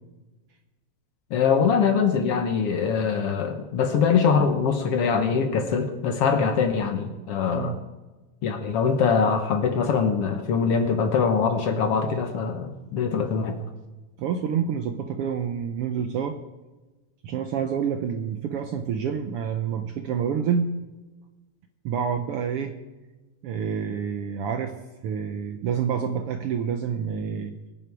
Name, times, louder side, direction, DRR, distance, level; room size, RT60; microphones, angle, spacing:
voice 1, 1.3-7.8 8.4-13.6, left 6 dB, 60° left, 6 dB, 1.8 m, -23 dB
voice 2, 14.2-16.4 17.2-20.7 21.8-22.8 23.4-24.7 25.0-27.5, right 7 dB, 70° right, 7 dB, 1.4 m, -28 dB
23.0 x 9.6 x 4.7 m, 1.2 s
omnidirectional pair, 3.3 m